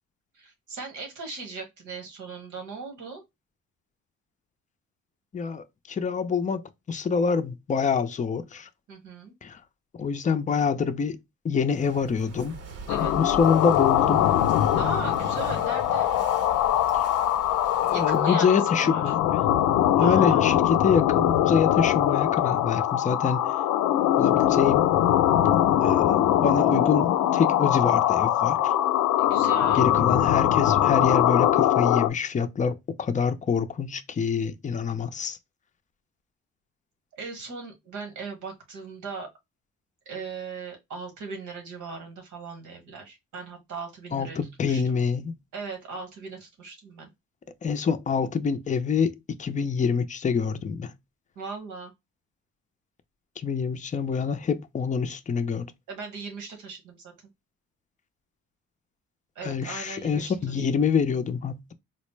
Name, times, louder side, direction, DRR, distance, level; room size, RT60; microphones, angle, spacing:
voice 1, 0.3-3.2 8.9-9.3 12.9-13.1 14.8-16.1 17.9-19.1 20.0-20.6 29.2-29.8 37.2-39.3 40.0-45.0 45.5-47.1 51.3-51.9 55.9-57.1 59.3-60.6, right 4 dB, 80° right, 1.5 m, -38 dB
voice 2, 5.3-6.6 6.9-8.7 9.4-9.6 10.0-12.6 13.2-14.3 16.9-17.1 17.8-19.2 20.0-23.5 24.2-24.9 25.8-28.7 29.7-35.4 44.1-45.3 47.6-50.9 53.4-55.7 59.4-61.7, left 6 dB, 25° left, 0.4 m, -26 dB
Walk footsteps / Wind / Waves surf, 11.7-18.3, right 4 dB, 55° right, 0.8 m, -41 dB
sound 1, 12.9-32.1, left 12 dB, 90° left, 0.5 m, -22 dB
4.1 x 2.1 x 3.1 m
cardioid pair, 90°, 30 cm